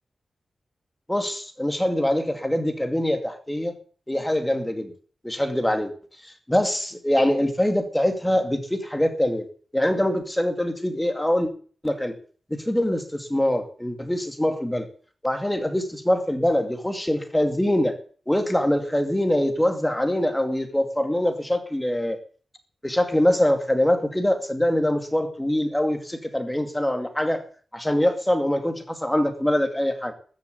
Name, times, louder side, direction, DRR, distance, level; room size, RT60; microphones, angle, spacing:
voice 1, 1.1-3.7 4.1-4.9 5.2-5.9 6.5-9.5 9.7-11.5 11.8-12.1 12.5-14.9 15.2-17.9 18.3-22.2 22.8-27.4 27.7-30.1, left 1 dB, 10° left, 2.3 m, -23 dB
14.0 x 7.3 x 8.3 m
wide cardioid pair, 115°, 0 cm